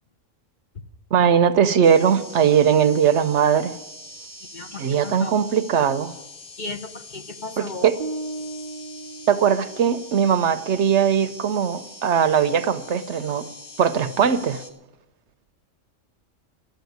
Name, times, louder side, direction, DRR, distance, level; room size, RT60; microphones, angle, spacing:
voice 1, 1.1-3.7 4.8-6.1 7.6-7.9 9.3-13.5 13.8-14.6, right 8 dB, 65° right, 1.0 m, -20 dB
sound 1, 1.8-14.7, left 2 dB, 80° left, 1.9 m, -43 dB
voice 2, 4.5-5.4 6.6-7.9, left 3 dB, 40° left, 0.9 m, -35 dB
sound 2, 8.0-10.2, right 2 dB, 40° right, 0.7 m, -35 dB
12.5 x 8.8 x 9.3 m
omnidirectional pair, 1.3 m